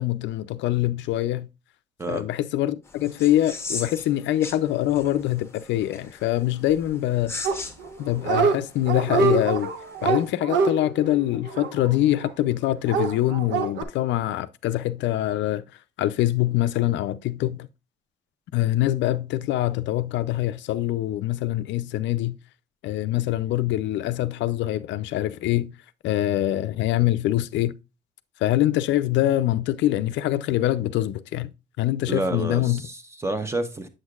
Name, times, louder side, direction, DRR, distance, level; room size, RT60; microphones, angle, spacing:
voice 1, 0.0-1.5 2.1-7.3 8.0-9.7 10.0-15.6 16.0-17.7 18.5-22.4 22.8-25.7 26.0-27.8 28.4-32.8, left 14 dB, 75° left, 0.4 m, -24 dB
sound 1, 2.8-10.3, left 3 dB, 15° left, 0.9 m, -40 dB
Dog, 7.4-7.9 8.2-8.6 8.9-12.3 12.9-13.8, right 5 dB, 75° right, 1.0 m, -24 dB
voice 2, 32.1-33.9, right 2 dB, 15° right, 0.8 m, -29 dB
7.7 x 6.3 x 2.3 m
cardioid pair, 140°, 19 cm